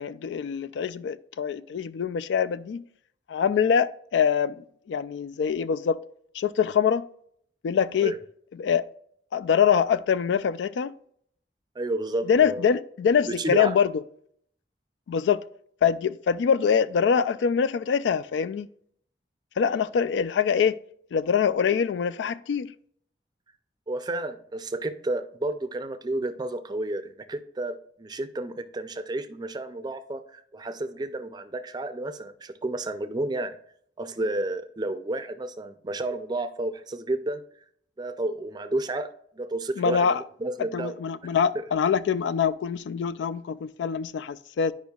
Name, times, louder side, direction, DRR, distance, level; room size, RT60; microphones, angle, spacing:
voice 1, 0.0-2.8 3.3-6.0 6.3-7.1 7.6-8.1 8.6-8.8 9.3-10.9 12.3-14.0 15.1-15.4 15.8-18.7 19.6-20.8 21.1-22.7 39.8-40.2 40.7-44.7, left 7 dB, 90° left, 0.3 m, -24 dB
voice 2, 11.8-12.7 13.3-13.8 23.9-33.6 34.0-37.4 38.0-41.0 41.5-41.7, right 2 dB, 25° right, 0.4 m, -31 dB
10.5 x 5.1 x 2.3 m
head